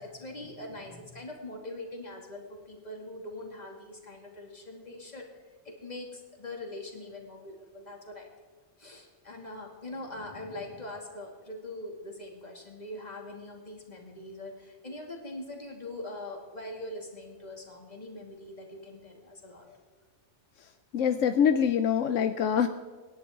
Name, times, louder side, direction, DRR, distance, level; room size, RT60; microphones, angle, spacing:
voice 1, 0.0-5.3 5.6-8.3 8.8-19.8, left 1 dB, 35° left, 0 dB, 2.5 m, -42 dB
voice 2, 20.9-22.7, left 8 dB, 80° left, 9 dB, 1.0 m, -24 dB
26.0 x 11.0 x 3.7 m, 1.4 s
omnidirectional pair, 1.3 m